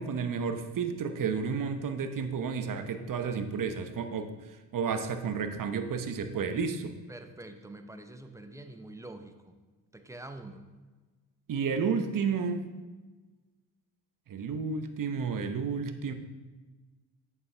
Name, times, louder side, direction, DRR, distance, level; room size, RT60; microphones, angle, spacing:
voice 1, 0.0-4.3 4.7-7.0 11.5-12.6 14.3-16.1, right 5 dB, 45° right, 8 dB, 0.9 m, -31 dB
voice 2, 7.1-9.5 9.9-10.6, right 2 dB, 5° right, 7 dB, 0.8 m, -45 dB
8.0 x 7.1 x 3.4 m, 1.3 s
supercardioid pair, 60°, 47 cm